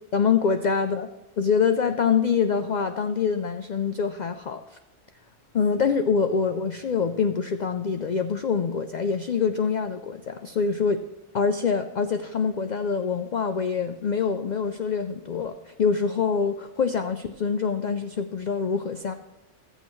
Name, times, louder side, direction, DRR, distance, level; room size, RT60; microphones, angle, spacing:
voice 1, 0.1-1.1 1.4-4.8 5.5-11.0 11.3-19.1, left 5 dB, 75° left, 8 dB, 0.4 m, -25 dB
15.5 x 7.9 x 3.1 m, 1.0 s
omnidirectional pair, 1.3 m